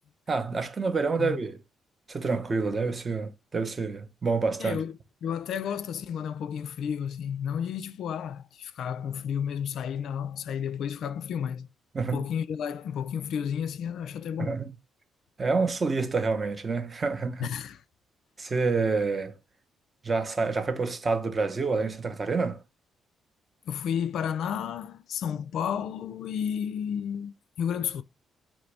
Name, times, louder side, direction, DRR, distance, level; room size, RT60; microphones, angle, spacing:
voice 1, 0.3-1.6 2.1-4.8 11.9-12.2 14.4-14.7 15.4-17.5 18.4-19.4 20.0-22.6, right 4 dB, 30° right, 0.6 m, -28 dB
voice 2, 4.6-11.7 12.0-14.6 17.4-17.8 23.6-28.0, left 8 dB, 75° left, 0.3 m, -32 dB
4.0 x 3.0 x 3.3 m
cardioid pair, 90°, 0 cm